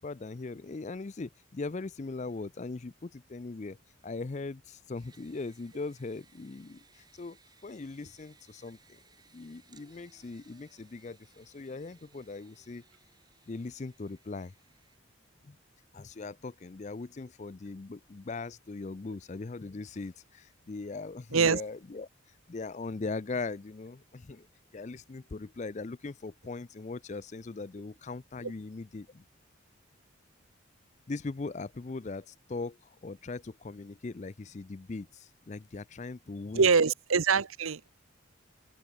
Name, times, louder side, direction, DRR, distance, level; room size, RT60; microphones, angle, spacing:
voice 1, 0.0-3.8 4.0-9.0 9.3-12.8 13.5-14.5 15.4-15.6 15.9-22.1 22.5-24.5 24.7-29.2 31.1-36.7, left 3 dB, 35° left, 0.4 m, -40 dB
sound 1, 5.0-15.0, right 4 dB, 20° right, 7.1 m, -64 dB
voice 2, 36.5-37.9, right 5 dB, 80° right, 0.8 m, -24 dB
open air
head